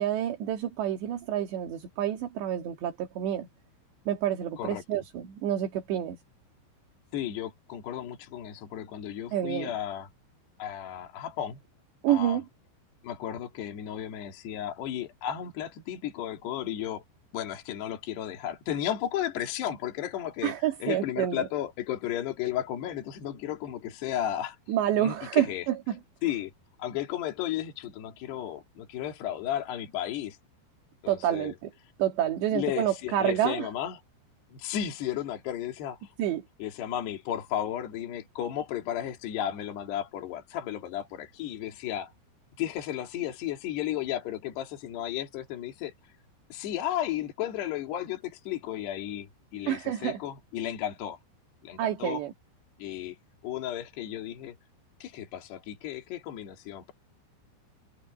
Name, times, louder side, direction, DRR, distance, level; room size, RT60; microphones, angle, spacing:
voice 1, 0.0-3.5 4.1-6.2 9.3-9.8 12.0-12.5 20.4-21.5 24.7-26.0 31.1-31.7 32.0-33.7 36.2-36.4 49.7-50.2 51.8-52.3, right 11 dB, 65° right, 4.2 m, -28 dB
voice 2, 4.6-5.0 7.1-10.1 10.6-11.6 12.1-12.4 13.0-17.0 17.3-20.5 20.8-24.6 25.0-25.6 26.2-26.5 26.8-30.4 31.0-31.5 32.5-34.0 34.5-36.1 36.6-42.1 42.6-45.9 46.5-51.2 51.6-52.2 52.8-53.2 53.4-54.6 55.0-56.9, left 11 dB, 60° left, 4.6 m, -34 dB
omnidirectional pair, 5.7 m